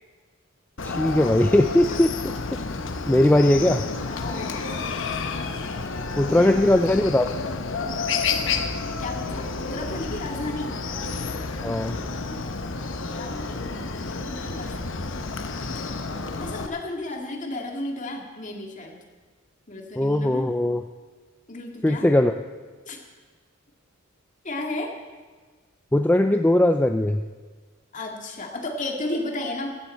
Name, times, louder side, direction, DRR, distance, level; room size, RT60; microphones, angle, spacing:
Chicken rooster, 0.8-16.7, left 4 dB, 65° left, 0.9 m, -30 dB
voice 1, 0.8-2.3 3.1-3.8 6.2-7.3 11.6-12.0 20.0-20.8 21.8-22.3 25.9-27.2, left 1 dB, 10° left, 6 dB, 0.3 m, -19 dB
voice 2, 4.1-4.7 6.1-6.5 9.0-10.8 13.1-13.8 14.3-15.1 16.3-19.0 19.7-20.5 21.5-22.1 22.9-23.0 24.4-24.9 27.9-29.8, left 2 dB, 35° left, 1 dB, 2.0 m, -33 dB
15.0 x 14.5 x 4.4 m, 1.4 s
head